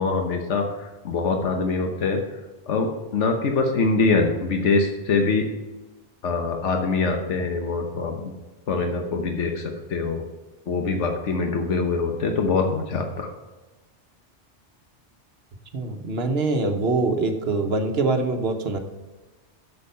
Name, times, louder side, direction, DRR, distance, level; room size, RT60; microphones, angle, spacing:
voice 1, 0.0-2.2 2.7-5.5 6.2-8.3 8.7-10.2 10.7-13.3, left 4 dB, 85° left, 3 dB, 1.3 m, -24 dB
voice 2, 15.7-18.8, right 3 dB, 60° right, 5 dB, 1.2 m, -24 dB
8.5 x 7.4 x 5.5 m, 1.2 s
omnidirectional pair, 1.2 m